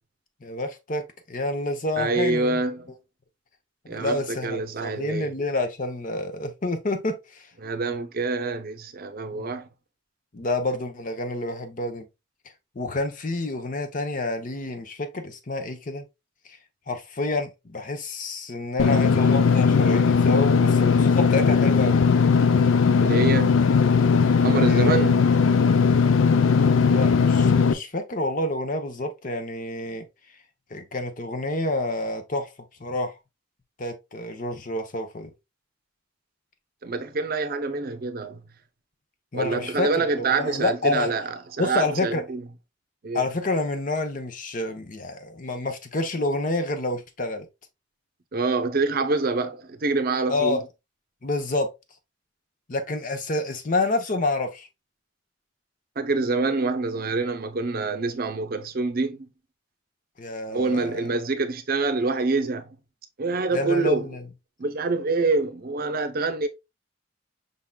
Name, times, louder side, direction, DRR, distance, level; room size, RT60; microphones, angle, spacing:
voice 1, 0.4-2.6 3.9-7.4 9.3-9.5 10.3-12.1 12.8-16.0 16.9-22.0 24.6-25.1 26.7-30.1 30.7-32.5 32.8-33.1 33.8-35.3 39.3-41.1 41.6-42.2 43.1-47.5 50.3-50.6 51.2-51.7 52.7-54.7 60.2-61.1 63.5-64.2, left 2 dB, 45° left, 0.7 m, -28 dB
voice 2, 2.0-2.9 3.9-5.3 7.6-9.7 23.0-23.7 24.4-25.2 36.8-38.4 39.3-42.4 43.0-43.2 48.3-50.6 56.0-59.3 60.5-62.7 63.2-64.1 64.6-66.5, right 3 dB, 50° right, 0.6 m, -26 dB
Engine / Mechanisms, 18.8-27.7, left 5 dB, 90° left, 0.4 m, -18 dB
5.4 x 3.7 x 2.2 m
head